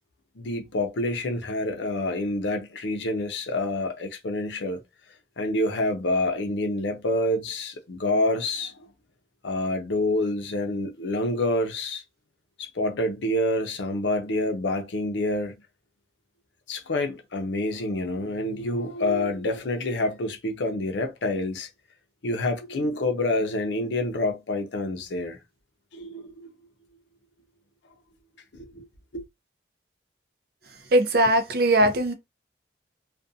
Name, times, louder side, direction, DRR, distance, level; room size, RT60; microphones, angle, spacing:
voice 1, 0.4-4.8 5.4-8.8 9.4-12.0 12.6-15.5 16.7-21.7 22.2-25.4 25.9-26.5 28.5-28.8 29.1-29.2, left 1 dB, 75° left, 0.6 m, -27 dB
voice 2, 30.9-32.1, right 1 dB, 55° right, 0.5 m, -20 dB
2.5 x 2.2 x 2.6 m
head